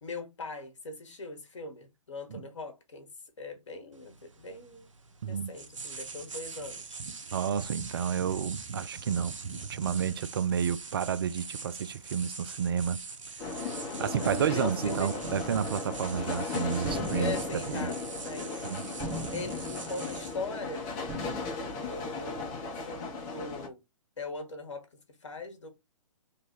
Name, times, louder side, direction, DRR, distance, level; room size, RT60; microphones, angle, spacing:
voice 1, 0.0-3.1 3.4-4.9 5.2-7.0 14.0-15.1 17.1-18.0 18.2-18.7 19.3-20.9 21.8-23.8 24.2-25.7, left 3 dB, 60° left, 1.5 m, -40 dB
sound 1, 3.9-22.4, right 4 dB, 70° right, 0.8 m, -43 dB
voice 2, 7.3-9.4 9.7-13.0 13.6-13.7 14.0-17.9 18.6-18.9, right 8 dB, 45° right, 0.4 m, -31 dB
sound 2, 13.4-23.7, left 4 dB, 30° left, 1.2 m, -36 dB
sound 3, 15.2-16.4 16.8-18.7 19.0-20.7 21.1-21.5, right 1 dB, 20° right, 0.8 m, -40 dB
3.3 x 2.7 x 4.5 m
figure-of-eight pair, 120°, 17 cm